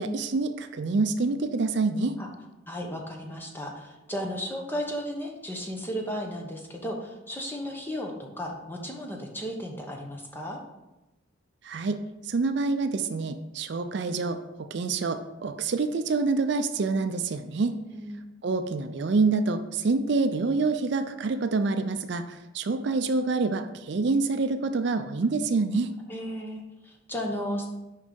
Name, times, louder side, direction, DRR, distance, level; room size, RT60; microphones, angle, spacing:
voice 1, 0.0-2.2 11.6-17.8 18.4-25.9, right 3 dB, 55° right, 8 dB, 0.4 m, -27 dB
voice 2, 2.7-10.6 17.7-18.2 26.1-27.7, equal, 10° left, 1 dB, 0.9 m, -34 dB
6.4 x 5.3 x 5.2 m, 1.0 s
head